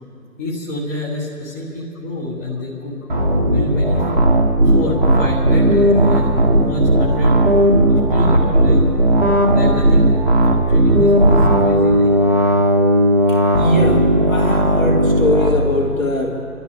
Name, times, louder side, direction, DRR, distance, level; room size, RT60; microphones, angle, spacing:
voice 1, 0.4-2.9 3.5-4.0 4.6-7.4 7.9-8.8 9.5-10.1 10.4-12.1, left 2 dB, 10° left, -9 dB, 1.3 m, -27 dB
sound 1, 3.1-15.5, right 1 dB, 30° right, 1.5 m, -15 dB
voice 2, 13.5-16.4, left 1 dB, 60° left, 1 dB, 2.8 m, -20 dB
29.0 x 13.0 x 3.6 m, 2.7 s
figure-of-eight pair, 160°, 46 cm